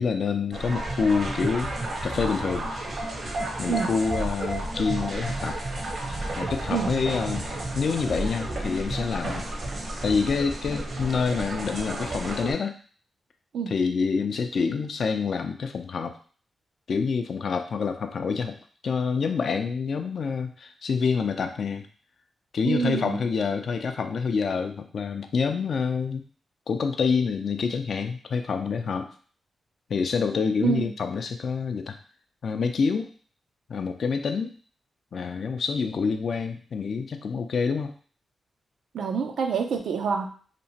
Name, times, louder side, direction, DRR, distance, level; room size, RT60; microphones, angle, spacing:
voice 1, 0.0-1.7 2.0-2.7 3.6-5.6 6.4-7.5 7.7-9.4 10.0-12.7 13.7-16.2 16.9-18.6 18.8-21.9 22.5-26.2 26.7-29.1 29.9-32.0 32.4-33.1 33.7-34.5 35.1-37.9, left 5 dB, 70° left, 7 dB, 0.3 m, -27 dB
sound 1, 0.5-12.5, right 1 dB, 60° right, 0.8 m, -32 dB
voice 2, 22.6-23.2 30.6-30.9 38.9-40.3, right 6 dB, 85° right, 4 dB, 0.4 m, -26 dB
2.9 x 2.1 x 2.7 m, 0.42 s
cardioid pair, 60°, 0 cm